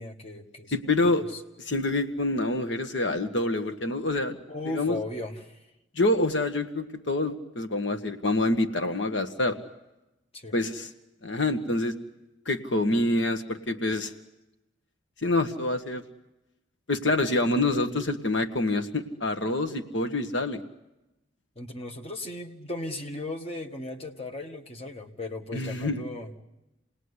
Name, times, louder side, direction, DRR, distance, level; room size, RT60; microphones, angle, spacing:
voice 1, 0.0-1.4 4.5-5.6 10.3-10.5 21.6-26.3, left 2 dB, 30° left, 3 dB, 1.8 m, -37 dB
voice 2, 0.7-1.3 1.6-4.4 4.6-5.0 5.9-9.6 10.5-10.9 11.2-11.9 12.4-14.1 15.2-16.0 16.9-20.6 25.5-26.1, left 2 dB, 70° left, 8 dB, 1.5 m, -26 dB
28.0 x 20.0 x 9.8 m, 0.96 s
head